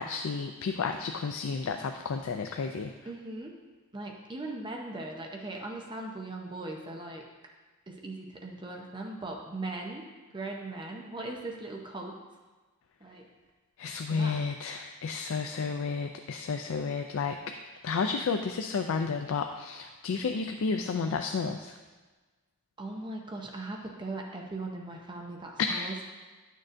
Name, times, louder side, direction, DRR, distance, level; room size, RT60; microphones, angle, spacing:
voice 1, 0.0-2.9 13.8-17.4 17.8-21.8 25.7-25.9, left 5 dB, 65° left, 5 dB, 0.4 m, -32 dB
voice 2, 3.0-3.5 3.9-7.2 7.9-10.0 10.3-12.2 13.0-13.3 14.1-14.4 22.8-26.2, right 2 dB, 20° right, 0 dB, 0.7 m, -39 dB
10.5 x 6.4 x 2.6 m, 1.3 s
head